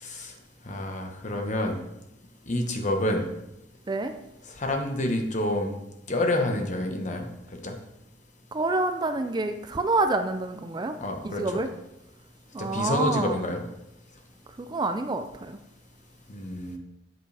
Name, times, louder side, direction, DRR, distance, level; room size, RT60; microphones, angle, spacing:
voice 1, 0.0-0.3 0.6-1.8 2.5-3.3 4.6-5.7 6.1-7.2 7.5-7.7 11.0-11.6 12.6-13.6 16.3-16.8, left 1 dB, 40° left, 4 dB, 1.1 m, -28 dB
voice 2, 8.5-11.0 11.2-11.7 12.5-13.4 14.6-15.6, right 2 dB, 25° right, 8 dB, 0.4 m, -27 dB
8.1 x 7.4 x 3.4 m, 0.89 s
head